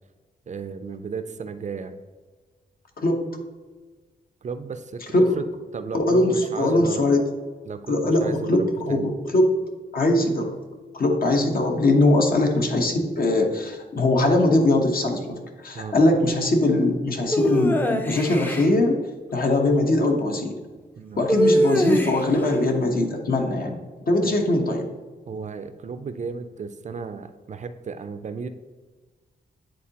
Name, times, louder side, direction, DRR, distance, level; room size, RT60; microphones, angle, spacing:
voice 1, 0.5-2.0 4.4-7.1 7.6-9.1 15.7-16.2 21.0-21.3 24.2-24.4 25.3-28.5, right 5 dB, 45° right, 10 dB, 0.4 m, -34 dB
voice 2, 5.9-7.2 7.9-9.6 9.9-10.6 10.9-19.0 19.3-20.6 21.2-23.8 24.1-24.9, left 2 dB, 60° left, 3 dB, 1.0 m, -21 dB
sound 1, 17.3-18.7 21.3-22.4, equal, 10° left, 0.5 m, -22 dB
9.4 x 3.8 x 2.9 m, 1.4 s
cardioid pair, 90°, 17 cm